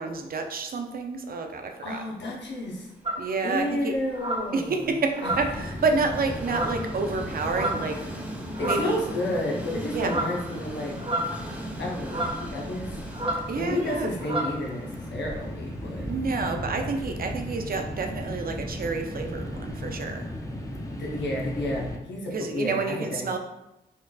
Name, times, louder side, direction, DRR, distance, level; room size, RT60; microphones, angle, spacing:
voice 1, 0.0-2.0 3.2-4.0 4.5-8.0 8.6-9.1 9.9-10.2 13.5-14.1 16.0-20.3 22.3-23.4, right 4 dB, 55° right, 5 dB, 0.5 m, -29 dB
voice 2, 1.8-2.9 3.4-5.0 5.2-5.7 8.6-10.9 11.8-13.0 13.5-16.1 20.8-23.3, left 1 dB, 80° left, -2 dB, 0.8 m, -31 dB
Train, 2.4-20.5, right 1 dB, 10° right, 0.8 m, -42 dB
sound 1, 3.0-3.3 4.1-4.5 5.1-5.7 6.4-6.9 7.5-7.9 8.5-9.0 10.0-10.4 11.0-11.6 12.0-12.4 13.1-13.5 13.7-13.9 14.2-14.6, right 1 dB, 30° right, 0.9 m, -30 dB
sound 2, 5.3-22.0, equal, 20° left, 0.5 m, -37 dB
4.3 x 2.3 x 2.3 m, 0.93 s
cardioid pair, 55°, 18 cm